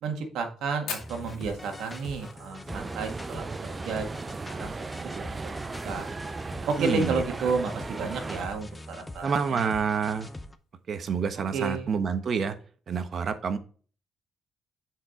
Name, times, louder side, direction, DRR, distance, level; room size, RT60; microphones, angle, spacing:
voice 1, 0.0-3.4 3.8-4.1 4.5-4.7 5.1-5.2 5.8-6.1 6.7-9.7 11.5-11.9, right 4 dB, 80° right, 4 dB, 1.7 m, -31 dB
Fire, 0.9-5.4 5.6-5.7 6.0-6.1 6.5-6.9 7.4-7.5 8.5-8.7, left 7 dB, 85° left, 2.1 m, -42 dB
sound 1, 1.0-10.6, left 1 dB, 15° left, 0.7 m, -43 dB
sound 2, 2.7-8.4, right 3 dB, 30° right, 0.5 m, -37 dB
voice 2, 6.8-7.5 9.2-10.3 10.9-12.6 12.9-13.6, right 6 dB, 55° right, 10 dB, 1.0 m, -28 dB
7.5 x 4.8 x 3.6 m, 0.41 s
cardioid pair, 90°, 0 cm